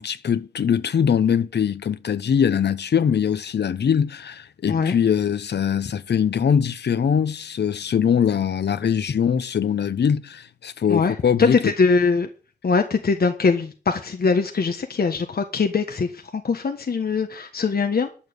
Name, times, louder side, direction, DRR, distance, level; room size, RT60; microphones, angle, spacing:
voice 1, 0.0-11.7, left 8 dB, 80° left, 0.9 m, -22 dB
voice 2, 10.9-12.3 12.6-18.1, left 4 dB, 65° left, 1.4 m, -22 dB
11.0 x 7.2 x 8.1 m
cardioid pair, 65°, 17 cm